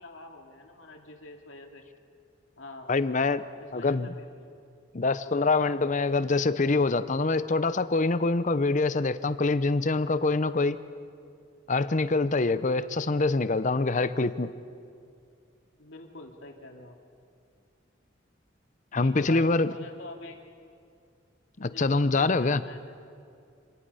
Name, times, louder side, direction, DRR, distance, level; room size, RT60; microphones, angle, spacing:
voice 1, 0.0-1.8 2.6-2.9 3.6-4.5 15.8-17.0 19.0-20.4 21.6-22.8, left 2 dB, 90° left, 2 dB, 2.5 m, -46 dB
voice 2, 2.9-3.4 3.7-4.1 4.9-10.8 11.7-14.5 18.9-19.7 21.6-22.6, left 3 dB, 40° left, 13 dB, 0.7 m, -25 dB
27.5 x 19.0 x 5.6 m, 2.4 s
head